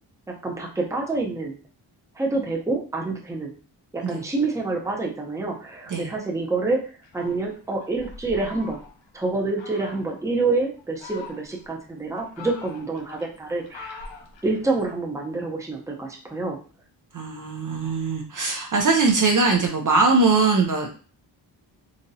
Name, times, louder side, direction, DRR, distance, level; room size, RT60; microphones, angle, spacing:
voice 1, 0.4-1.5 2.2-3.5 3.9-6.8 7.1-8.8 9.1-14.0 14.4-16.6, right 3 dB, 5° right, -1 dB, 0.7 m, -27 dB
Fowl, 7.0-9.1 9.6-10.2 10.8-11.7 12.1-14.9, left 4 dB, 75° left, 0.9 m, -43 dB
voice 2, 17.1-20.9, right 3 dB, 45° right, 2 dB, 0.6 m, -21 dB
4.0 x 2.9 x 2.6 m, 0.37 s
wide cardioid pair, 145°, 45 cm